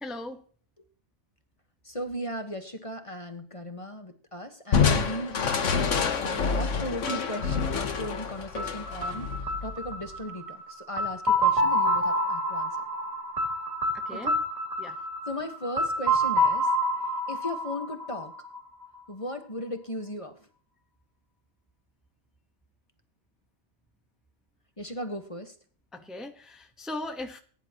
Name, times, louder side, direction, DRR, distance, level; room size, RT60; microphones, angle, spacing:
voice 1, 0.0-0.4 14.0-14.3 14.8-15.0 25.9-27.4, left 2 dB, ahead, 4 dB, 1.0 m, -38 dB
voice 2, 1.8-12.7 14.1-14.3 15.2-16.7 17.3-18.3 19.1-20.5 24.8-25.5, left 1 dB, 30° left, 6 dB, 1.3 m, -37 dB
Crushing, 4.7-10.1, left 5 dB, 85° left, 1.5 m, -27 dB
sound 1, 7.1-18.8, equal, 30° right, 2.5 m, -28 dB
20.0 x 10.5 x 2.9 m, 0.43 s
omnidirectional pair, 1.2 m